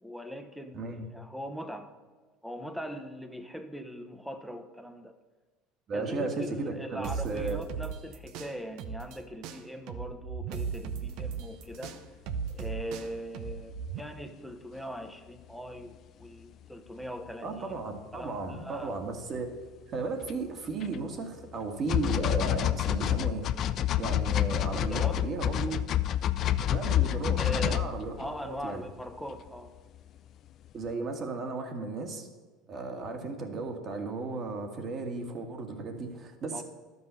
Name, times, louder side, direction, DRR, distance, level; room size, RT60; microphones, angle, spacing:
voice 1, 0.0-1.9 2.4-5.2 5.9-12.0 12.5-18.9 24.7-25.2 27.4-27.8 28.1-29.8 36.5-36.6, equal, ahead, 8 dB, 1.1 m, -41 dB
voice 2, 0.7-1.1 5.9-7.6 17.4-19.5 19.9-23.5 24.0-25.8 26.7-28.8 30.7-32.3 32.7-36.6, right 3 dB, 45° right, 4 dB, 1.8 m, -35 dB
sound 1, 7.0-9.2 9.4-14.0, right 6 dB, 65° right, 0.8 m, -36 dB
sound 2, 11.9-12.0 20.2-20.3 20.8-21.0 21.9-28.6 29.4-29.5, left 11 dB, 50° left, 0.4 m, -28 dB
11.5 x 5.5 x 6.9 m, 1.3 s
hypercardioid pair, 80°, 0 cm